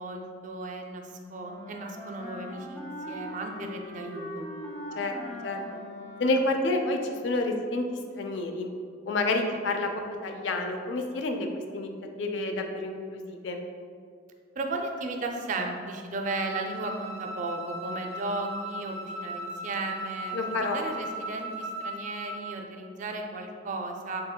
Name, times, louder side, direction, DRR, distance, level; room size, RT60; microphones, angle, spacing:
voice 1, 0.0-2.8 3.1-4.5 14.6-24.2, right 2 dB, 40° right, 3 dB, 0.4 m, -35 dB
Wind instrument woodwind instrument, 1.4-6.8, left 1 dB, 15° left, 0.6 m, -40 dB
voice 2, 6.2-7.8 8.2-8.7 9.1-9.9 10.2-11.5 11.7-11.9 12.2-13.6 20.3-20.8, left 2 dB, 70° left, 4 dB, 0.4 m, -29 dB
Wind instrument woodwind instrument 2, 16.2-22.5, right 1 dB, 80° right, 0.6 m, -37 dB
6.9 x 2.8 x 2.2 m, 2.2 s
head